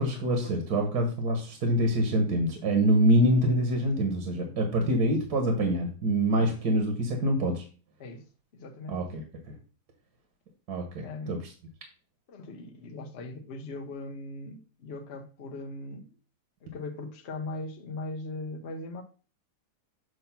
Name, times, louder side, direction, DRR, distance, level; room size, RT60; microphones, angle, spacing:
voice 1, 0.0-7.7 8.9-9.2 10.7-11.4, right 1 dB, 70° right, 1.8 m, -25 dB
voice 2, 8.5-9.1 11.0-11.4 12.3-16.1 16.6-19.0, left 2 dB, 50° left, 1.0 m, -39 dB
8.0 x 2.8 x 5.8 m
omnidirectional pair, 1.8 m